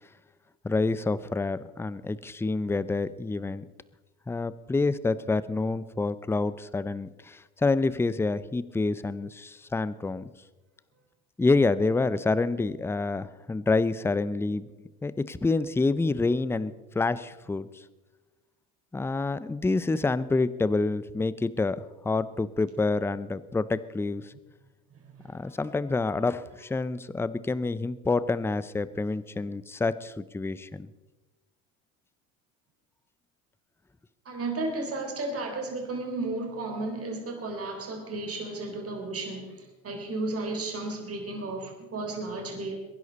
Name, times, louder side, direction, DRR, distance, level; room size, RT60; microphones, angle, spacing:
voice 1, 0.6-3.6 4.3-10.2 11.4-14.7 15.0-17.7 18.9-24.3 25.3-30.9, left 3 dB, 5° left, 17 dB, 0.5 m, -27 dB
voice 2, 25.1-25.6 34.3-42.8, right 2 dB, 35° right, 2 dB, 4.2 m, -34 dB
23.0 x 10.5 x 4.2 m, 1.2 s
hypercardioid pair, 75°, 42 cm